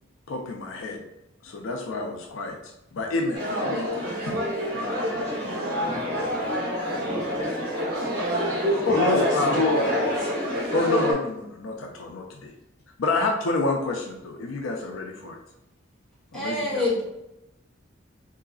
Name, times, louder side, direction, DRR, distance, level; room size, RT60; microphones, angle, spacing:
voice 1, 0.3-1.0 1.4-4.4 4.7-5.1 6.9-7.3 8.6-9.6 10.7-12.5 13.0-15.4 16.3-16.8, left 3 dB, 85° left, 1 dB, 0.5 m, -29 dB
sound 1, 3.3-11.1, equal, 55° right, 1.3 m, -27 dB
voice 2, 5.8-6.6 7.1-7.5 8.9-10.3, left 1 dB, 55° left, -4 dB, 1.0 m, -28 dB
voice 3, 16.3-17.0, left 2 dB, 5° left, -7 dB, 1.1 m, -26 dB
3.7 x 3.1 x 2.4 m, 0.88 s
head